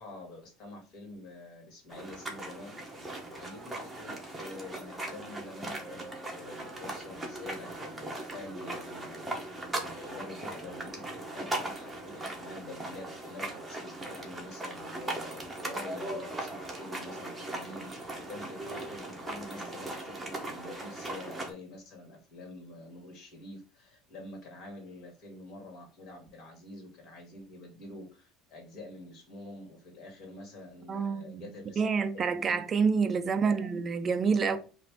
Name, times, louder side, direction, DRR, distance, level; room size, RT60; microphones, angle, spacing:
voice 1, 0.0-3.0 3.3-11.0 11.3-31.8 32.1-32.6 33.1-33.7 34.4-34.6, left 2 dB, 45° left, 2.1 m, -47 dB
sound 1, 1.9-21.5, right 1 dB, 5° right, 1.0 m, -39 dB
voice 2, 30.9-31.4 31.8-34.6, right 5 dB, 25° right, 0.4 m, -27 dB
5.8 x 2.6 x 3.5 m
cardioid pair, 165°, 0 cm